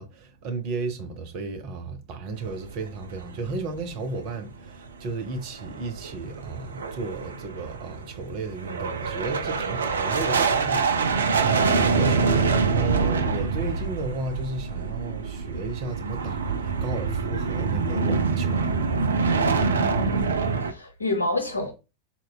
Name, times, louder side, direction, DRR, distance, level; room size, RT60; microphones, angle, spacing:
voice 1, 0.0-18.8, right 3 dB, 45° right, 0.7 m, -34 dB
sound 1, 2.4-4.1 4.3-4.4 4.9-5.0 5.4-20.7, right 4 dB, 70° right, 0.3 m, -25 dB
voice 2, 19.8-21.7, left 1 dB, 80° left, 0.8 m, -29 dB
4.1 x 2.2 x 2.3 m
figure-of-eight pair, 90°, 0 cm